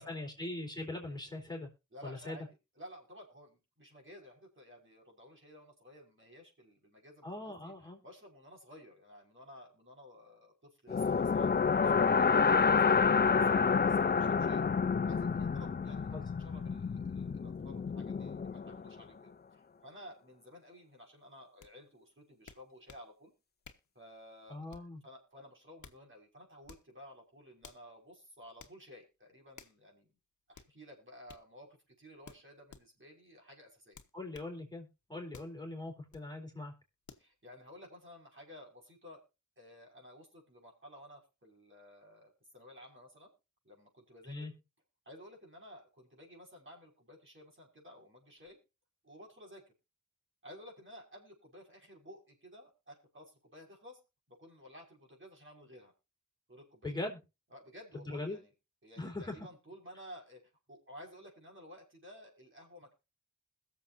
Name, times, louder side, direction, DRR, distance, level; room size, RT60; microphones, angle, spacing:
voice 1, 0.0-1.7 2.0-2.4 7.2-8.0 16.1-16.2 24.5-25.0 34.1-36.7 44.3-44.5 56.8-57.2 57.9-58.4 59.0-59.5, left 2 dB, 15° left, 0 dB, 4.1 m, -41 dB
voice 2, 1.9-14.6 15.0-23.3 23.9-30.1 30.5-34.0 37.2-39.2 39.6-43.3 43.6-44.5 45.1-48.6 49.0-49.6 50.4-54.0 54.3-55.9 56.5-56.9 57.5-58.5 58.8-60.4 60.7-62.9, equal, 40° right, -1 dB, 5.7 m, -54 dB
sound 1, 10.9-18.9, left 5 dB, 35° left, 0.5 m, -29 dB
sound 2, 21.6-21.7 22.5-23.1 23.6-23.9 24.7-25.0 25.6-26.0 26.6-26.9 27.6-27.9 28.6-28.8 29.6-29.8 30.5-30.7 31.3-31.5 32.2-32.9 33.9-34.5 35.3-35.6 36.1-36.3 37.1-37.3, left 5 dB, 70° left, 1.4 m, -54 dB
21.5 x 7.3 x 2.7 m, 0.28 s
cardioid pair, 55°, 30 cm